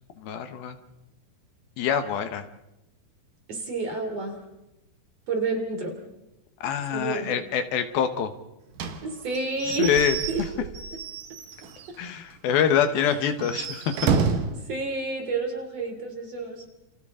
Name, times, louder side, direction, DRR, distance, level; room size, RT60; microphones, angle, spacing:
voice 1, 0.2-0.8 1.8-2.5 6.6-8.3 9.7-10.2 12.0-14.1, left 8 dB, 75° left, 8 dB, 3.0 m, -25 dB
voice 2, 3.5-4.4 5.3-6.0 6.9-7.4 9.0-10.4 13.0-13.2 14.5-16.7, right 3 dB, 45° right, 3 dB, 3.9 m, -30 dB
Slam / Squeak / Wood, 8.8-12.0 12.3-12.4 12.7-12.8 13.3-14.6, right 6 dB, 65° right, 2.8 m, -29 dB
29.0 x 28.5 x 3.8 m, 0.91 s
omnidirectional pair, 4.4 m